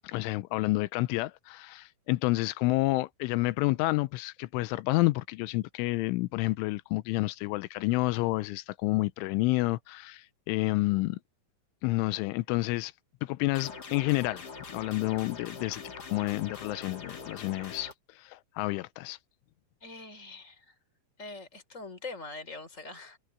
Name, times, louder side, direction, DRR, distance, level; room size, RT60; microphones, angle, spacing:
voice 1, 0.0-11.2 11.8-12.9 13.2-15.8 16.1-17.9 18.2-19.2, left 20 dB, 90° left, 3.1 m, -29 dB
sound 1, 13.5-17.9, left 4 dB, 60° left, 1.0 m, -43 dB
voice 2, 19.8-20.7 21.2-23.2, left 3 dB, 15° left, 4.2 m, -43 dB
omnidirectional pair, 5.6 m